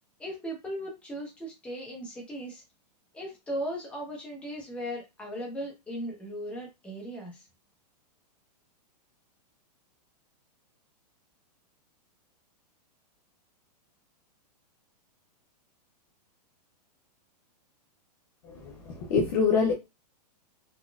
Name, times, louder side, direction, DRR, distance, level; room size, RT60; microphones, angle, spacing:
voice 1, 0.2-2.6 3.1-7.4, equal, 5° left, 0.9 m, -37 dB
voice 2, 18.4-19.7, left 5 dB, 30° left, 0.5 m, -26 dB
4.1 x 2.2 x 2.3 m
hypercardioid pair, 165°, 21 cm